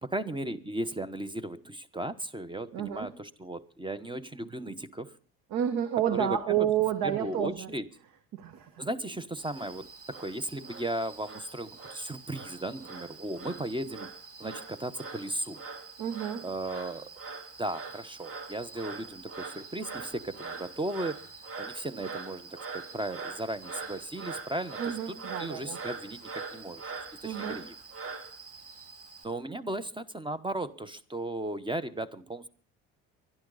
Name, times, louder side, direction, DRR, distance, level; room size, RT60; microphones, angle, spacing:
voice 1, 0.0-5.1 6.1-6.7 7.0-7.9 8.8-14.1 14.4-15.6 16.4-17.1 17.6-21.2 21.6-26.9 27.2-27.7 29.2-32.5, right 1 dB, 15° right, 16 dB, 1.1 m, -36 dB
voice 2, 2.7-3.1 5.5-7.7 8.3-8.8 16.0-16.4 24.8-25.8 27.2-27.6, right 10 dB, 70° right, 9 dB, 1.6 m, -30 dB
Frog, 9.4-29.2, right 4 dB, 40° right, 2.1 m, -43 dB
23.5 x 11.0 x 4.0 m, 0.42 s
hypercardioid pair, 65°, 36 cm